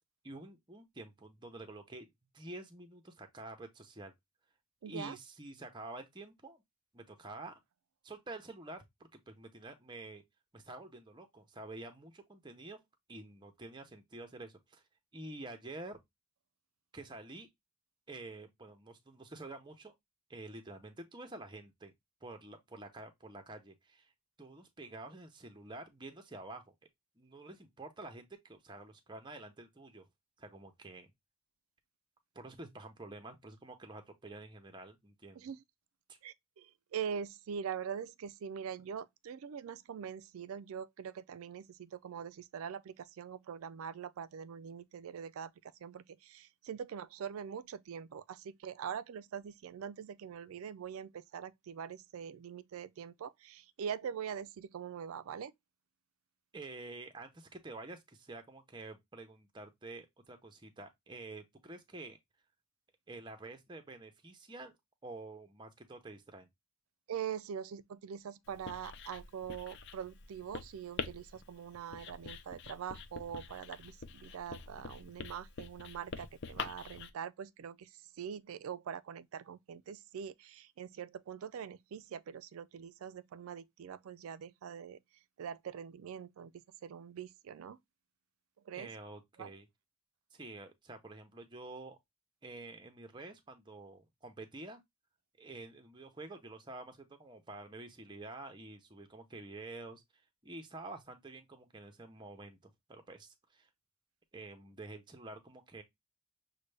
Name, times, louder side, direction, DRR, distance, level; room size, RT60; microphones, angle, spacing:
voice 1, 0.2-4.1 4.9-6.6 6.9-7.6 8.0-8.8 9.3-10.2 10.5-12.8 13.1-14.8 15.1-16.0 16.9-17.5 18.1-19.9 20.3-21.9 22.2-24.1 24.4-26.7 27.2-30.1 30.4-31.1 32.3-35.5 36.1-36.2 56.5-62.2 63.1-64.7 65.0-66.5 88.7-89.7 90.3-92.0 92.4-94.8 95.4-100.0 100.4-103.7 104.3-105.8, right 2 dB, 20° right, 0.6 m, -48 dB
voice 2, 4.8-5.2 35.4-35.6 36.2-55.5 67.1-85.0 85.4-86.5 86.8-87.8 88.7-88.9 89.4-89.5, right 8 dB, 70° right, 0.3 m, -43 dB
Writing, 68.5-77.1, left 5 dB, 50° left, 0.4 m, -46 dB
6.4 x 2.2 x 3.2 m
head